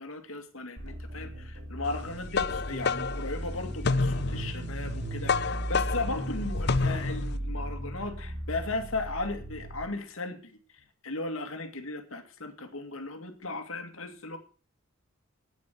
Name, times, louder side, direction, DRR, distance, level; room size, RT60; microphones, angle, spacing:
voice 1, 0.0-10.6 11.0-14.4, left 2 dB, 75° left, 7 dB, 2.3 m, -36 dB
sound 1, 0.8-9.9, right 1 dB, 55° right, 3.8 m, -36 dB
sound 2, 1.9-7.4, left 4 dB, 55° left, 0.6 m, -30 dB
9.8 x 9.5 x 8.3 m, 0.40 s
head